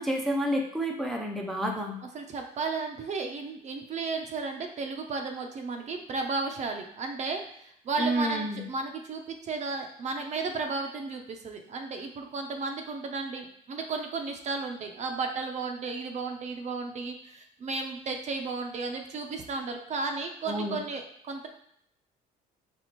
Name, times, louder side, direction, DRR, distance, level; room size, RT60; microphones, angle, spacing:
voice 1, 0.0-2.0 8.0-8.6 20.5-20.8, equal, ahead, 1 dB, 0.5 m, -29 dB
voice 2, 2.1-21.5, right 4 dB, 45° right, 4 dB, 0.6 m, -34 dB
4.3 x 3.1 x 2.9 m, 0.71 s
cardioid pair, 110°, 17 cm